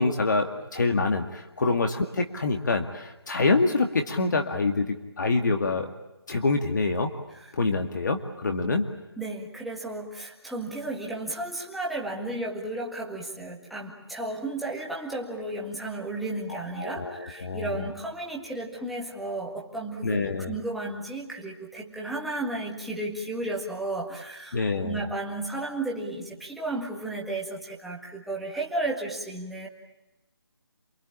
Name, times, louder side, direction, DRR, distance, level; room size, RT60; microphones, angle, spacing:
voice 1, 0.0-5.9 6.3-7.1 7.5-8.9 16.5-17.9 20.0-20.5 24.5-25.0, left 3 dB, 45° left, 5 dB, 2.2 m, -26 dB
voice 2, 9.2-29.7, right 2 dB, ahead, -3 dB, 1.8 m, -33 dB
28.0 x 22.5 x 8.7 m, 0.98 s
figure-of-eight pair, 165°, 14 cm